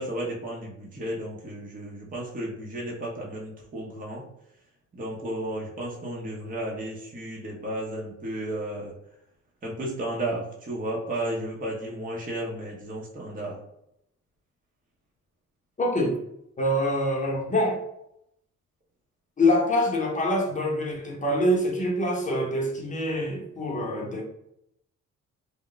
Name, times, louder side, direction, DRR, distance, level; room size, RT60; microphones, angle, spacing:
voice 1, 0.0-4.2 4.9-8.9 9.6-13.6, right 1 dB, 30° right, -3 dB, 0.8 m, -33 dB
voice 2, 15.8-16.2 16.6-17.8 19.4-24.2, left 1 dB, 25° left, -2 dB, 0.8 m, -25 dB
2.3 x 2.1 x 3.8 m, 0.78 s
cardioid pair, 90°, 30 cm